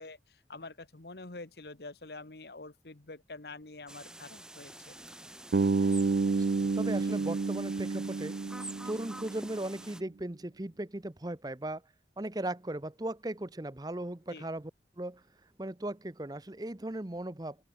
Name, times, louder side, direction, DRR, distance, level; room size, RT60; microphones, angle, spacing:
voice 1, 0.0-5.0 14.3-14.5, left 3 dB, 65° left, 1.5 m, -46 dB
sound 1, 3.9-10.0, right 1 dB, 5° right, 2.5 m, -47 dB
Bass guitar, 5.5-9.6, right 4 dB, 60° right, 0.4 m, -30 dB
voice 2, 6.6-8.4 8.8-11.8 12.2-14.7 15.0-15.2 15.6-17.6, right 1 dB, 20° right, 0.8 m, -37 dB
open air
head